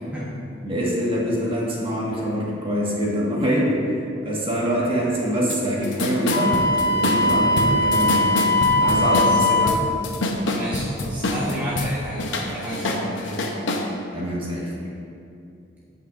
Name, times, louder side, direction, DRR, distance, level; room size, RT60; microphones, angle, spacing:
voice 1, 0.6-3.7 4.2-6.5 6.8-8.3 8.8-9.7 14.1-14.8, equal, 30° right, -5 dB, 1.6 m, -24 dB
sound 1, 5.5-5.6 5.8-11.9 12.2-13.9, left 2 dB, 85° left, 0.8 m, -26 dB
Wind instrument woodwind instrument, 6.3-9.9, left 1 dB, 60° left, 0.4 m, -20 dB
voice 2, 8.8-9.4 10.4-13.4, equal, 10° right, -10 dB, 1.1 m, -31 dB
15.0 x 5.5 x 2.5 m, 2.6 s
head